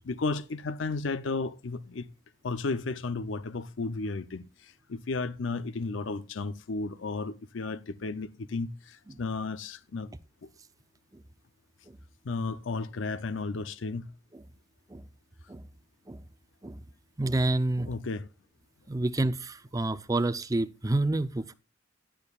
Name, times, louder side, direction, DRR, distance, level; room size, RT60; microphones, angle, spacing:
voice 1, 0.0-2.1 2.4-10.1 12.2-14.1 17.8-18.3, left 3 dB, 85° left, 0.6 m, -33 dB
voice 2, 17.2-17.9 18.9-21.5, right 2 dB, 20° right, 0.5 m, -28 dB
16.5 x 10.0 x 2.4 m
head